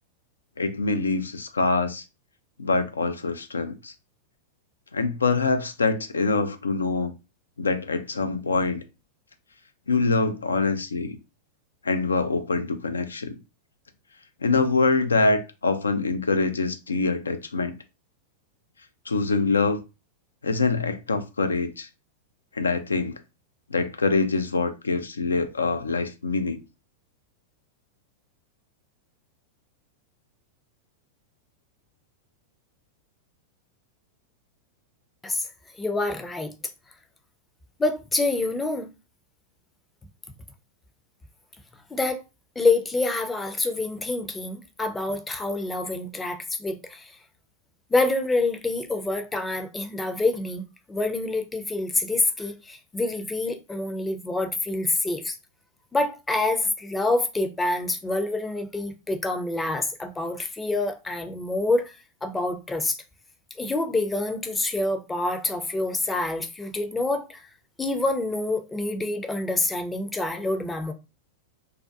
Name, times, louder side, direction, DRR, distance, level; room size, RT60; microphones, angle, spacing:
voice 1, 0.6-2.0 2.6-3.9 4.9-7.1 7.6-8.8 9.9-11.2 11.8-13.4 14.4-17.8 19.1-19.8 20.4-21.9 22.6-23.1 23.7-26.6, left 3 dB, 80° left, 0.4 m, -24 dB
voice 2, 35.8-36.6 37.8-38.9 41.9-42.2 42.6-47.1 47.9-55.3 55.9-63.0 63.6-67.5 67.8-70.9, left 2 dB, 10° left, 0.4 m, -27 dB
2.3 x 2.1 x 2.6 m
figure-of-eight pair, 95°, 0 cm